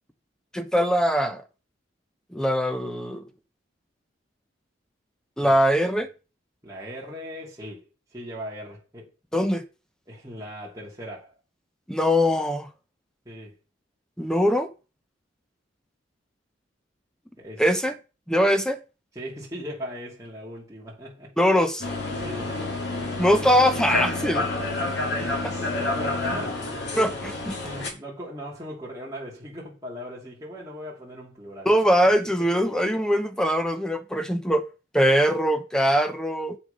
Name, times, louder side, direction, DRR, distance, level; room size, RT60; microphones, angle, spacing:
voice 1, 0.5-1.4 2.3-3.2 5.4-6.1 9.3-9.6 11.9-12.7 14.2-14.7 17.6-17.9 18.3-18.8 21.4-21.9 23.2-24.5 25.4-25.5 27.0-27.5 31.6-34.6 34.9-36.6, equal, 5° left, 1.0 m, -22 dB
voice 2, 6.6-7.8 8.1-9.1 10.1-11.3 13.2-13.5 17.4-17.6 19.1-21.3 22.2-22.8 24.4-24.7 25.1-27.2 27.6-31.7, equal, 20° right, 3.1 m, -39 dB
sound 1, 21.8-27.9, left 2 dB, 60° left, 2.8 m, -29 dB
8.0 x 7.0 x 5.2 m
head